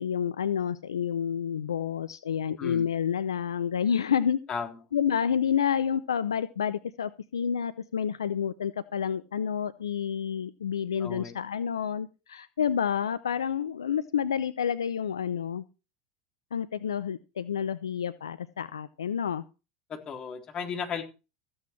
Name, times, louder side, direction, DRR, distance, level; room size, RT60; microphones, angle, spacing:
voice 1, 0.0-4.4 4.9-15.6 16.5-19.4, left 8 dB, 85° left, 14 dB, 0.6 m, -29 dB
voice 2, 11.0-11.4 19.9-21.0, left 6 dB, 35° left, 6 dB, 3.6 m, -35 dB
14.5 x 8.8 x 4.5 m, 0.30 s
hypercardioid pair, 80°, 2 cm